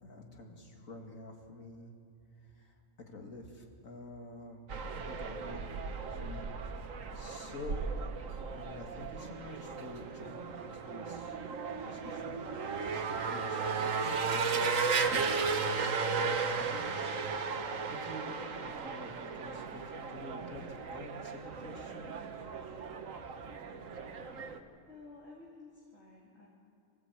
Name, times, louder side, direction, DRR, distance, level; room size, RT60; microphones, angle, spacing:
voice 1, 0.0-1.9 2.5-2.8 3.1-4.6 5.0-5.7 6.1-6.4 7.1-7.8 8.5-11.4 11.7-12.5 13.3-17.1 18.0-22.1, left 2 dB, 85° left, 2 dB, 2.6 m, -48 dB
sound 1, 4.7-24.6, right 5 dB, 75° right, 1.5 m, -35 dB
voice 2, 24.9-26.5, left 3 dB, 55° left, -5 dB, 2.9 m, -53 dB
24.5 x 15.0 x 8.2 m, 2.4 s
omnidirectional pair, 1.4 m